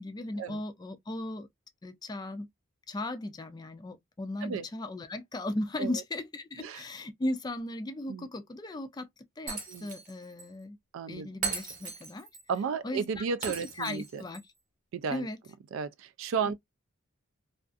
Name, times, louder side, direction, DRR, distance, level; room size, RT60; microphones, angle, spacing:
voice 1, 0.0-1.5 1.8-2.5 2.9-9.1 9.4-10.8 11.1-12.3 12.8-13.2 13.8-14.4 15.1-15.4, left 1 dB, 20° left, 0.3 m, -36 dB
Shatter, 9.5-10.1 10.4-10.5 11.4-12.4 13.4-14.4, right 5 dB, 40° right, 0.8 m, -37 dB
voice 2, 10.9-11.3 12.5-14.2 14.9-15.3 15.7-16.5, right 6 dB, 65° right, 0.3 m, -33 dB
2.4 x 2.4 x 2.3 m
head